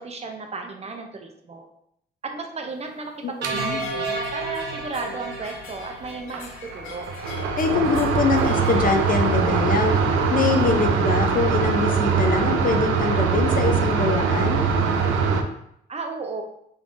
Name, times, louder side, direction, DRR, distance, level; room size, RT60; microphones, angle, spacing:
voice 1, 0.0-1.7 2.2-7.1 15.9-16.4, right 4 dB, 30° right, 4 dB, 0.6 m, -34 dB
voice 2, 3.2-3.8 7.6-10.0 10.3-14.6, left 4 dB, 45° left, 5 dB, 0.5 m, -24 dB
Nautical Wind Chimes in Sault Ste. Marie Ontario Canada, 3.4-9.3, left 4 dB, 90° left, 0.6 m, -39 dB
sound 1, 3.4-6.7, right 4 dB, 60° right, 1.0 m, -32 dB
sound 2, 3.4-3.5 6.3-6.4 6.7-15.4, right 5 dB, 85° right, 0.5 m, -22 dB
3.4 x 3.2 x 2.6 m, 0.74 s
cardioid pair, 90°, 20 cm